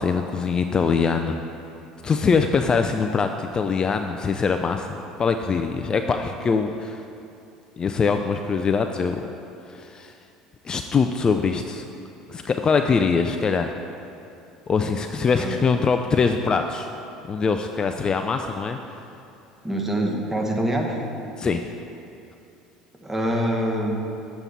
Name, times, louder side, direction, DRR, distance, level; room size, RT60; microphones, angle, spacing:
voice 1, 0.0-1.4 2.0-7.0 7.8-9.3 9.6-10.1 10.6-11.8 12.3-13.8 14.7-16.9 17.3-18.8 21.4-21.7, left 5 dB, 30° left, 6 dB, 0.3 m, -23 dB
voice 2, 15.3-15.6 19.6-21.0 23.0-24.1, right 1 dB, 10° right, 0 dB, 1.1 m, -25 dB
7.2 x 5.7 x 4.1 m, 2.6 s
hypercardioid pair, 70°, 3 cm